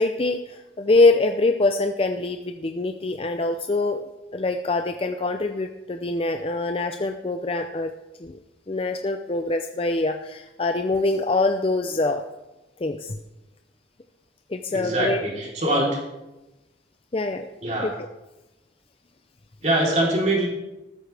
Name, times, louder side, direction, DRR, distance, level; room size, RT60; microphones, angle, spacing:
voice 1, 0.0-4.0 4.3-7.9 8.2-8.4 8.7-12.2 12.8-13.2 14.5-15.2 17.1-17.5 17.8-17.9, left 2 dB, 30° left, 6 dB, 0.5 m, -24 dB
voice 2, 14.7-16.0 17.6-17.9 19.6-20.5, right 1 dB, 40° right, -3 dB, 3.6 m, -23 dB
13.5 x 13.0 x 3.4 m, 1.0 s
head